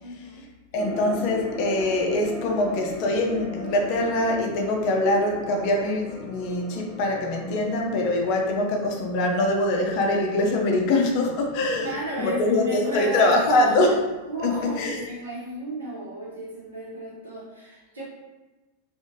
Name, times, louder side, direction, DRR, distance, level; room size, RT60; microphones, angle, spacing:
voice 1, 0.0-0.5 11.8-13.8 14.3-18.0, equal, 70° right, -6 dB, 1.0 m, -33 dB
voice 2, 0.7-14.0 14.4-15.0, left 2 dB, 45° left, 1 dB, 0.4 m, -23 dB
sound 1, 0.8-13.0 13.3-13.4, equal, 10° left, 0.8 m, -40 dB
2.5 x 2.4 x 2.8 m, 1.1 s
figure-of-eight pair, 90°, 0 cm